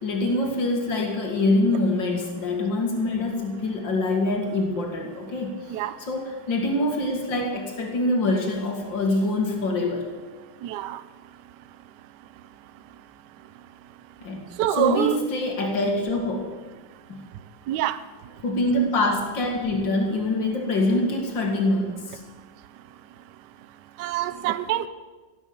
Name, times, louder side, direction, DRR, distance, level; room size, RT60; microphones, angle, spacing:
voice 1, 0.0-5.8 6.1-10.1 14.2-14.4 14.8-16.5 17.1-17.2 18.4-22.2, left 2 dB, 65° left, 1 dB, 2.9 m, -25 dB
voice 2, 10.6-11.0 14.6-15.2 17.7-18.0 24.0-24.9, right 11 dB, 70° right, 14 dB, 1.2 m, -25 dB
16.0 x 8.9 x 7.0 m, 1.3 s
omnidirectional pair, 2.2 m